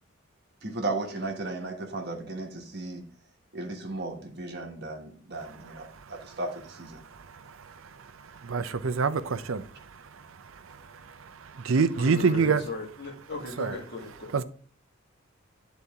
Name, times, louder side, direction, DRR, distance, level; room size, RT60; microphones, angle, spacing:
voice 1, 0.6-3.0 3.5-7.0, right 2 dB, 50° right, 1.4 m, -35 dB
voice 2, 5.4-6.4 7.0-12.7 13.6-13.8 14.3-14.4, right 5 dB, 75° right, 0.6 m, -29 dB
voice 3, 12.0-14.4, left 2 dB, 55° left, 2.0 m, -37 dB
9.6 x 4.1 x 3.5 m
head